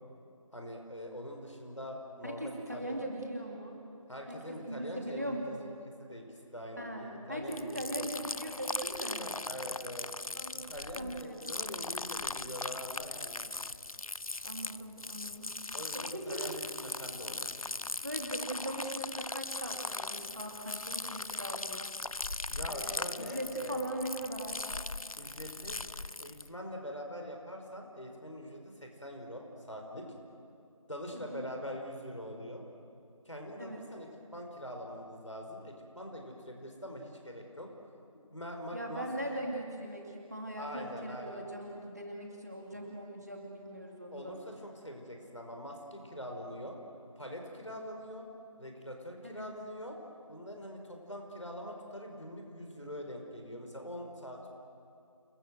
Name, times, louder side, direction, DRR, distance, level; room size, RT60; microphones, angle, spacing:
voice 1, 0.5-3.1 4.1-5.7 6.0-8.1 9.0-10.1 10.5-13.5 15.7-17.8 22.5-23.9 25.2-25.8 26.2-30.1 30.9-32.6 33.2-37.7 38.3-39.4 40.6-41.5 42.7-42.9 44.1-46.8 47.2-48.3 48.6-50.0 50.3-54.5, equal, 60° left, 2 dB, 5.1 m, -44 dB
voice 2, 2.2-3.8 4.3-5.7 6.8-9.3 10.3-10.7 11.0-11.8 14.4-15.6 15.9-16.4 18.0-21.9 22.6-24.7 31.1-31.4 33.6-33.9 38.7-44.4 49.2-49.5, right 1 dB, 30° right, 1 dB, 2.5 m, -40 dB
sound 1, 7.5-26.5, left 3 dB, 75° left, 0.6 m, -39 dB
29.0 x 21.0 x 7.9 m, 2.5 s
figure-of-eight pair, 180°, 18 cm